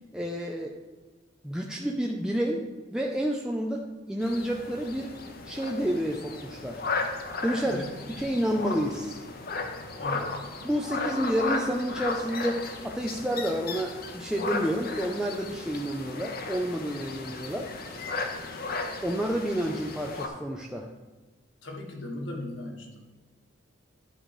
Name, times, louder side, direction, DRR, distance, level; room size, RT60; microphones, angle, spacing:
voice 1, 0.1-0.8 1.4-2.6 2.9-5.1 5.4-6.9 7.4-7.8 8.2-9.2 10.6-17.7 19.0-20.9, equal, 5° right, 0 dB, 0.5 m, -29 dB
sound 1, 4.2-20.3, left 3 dB, 50° left, 0.8 m, -35 dB
voice 2, 7.6-8.0 9.9-10.4 21.6-23.0, left 1 dB, 70° left, 0 dB, 1.5 m, -37 dB
11.0 x 3.8 x 4.9 m, 1.2 s
head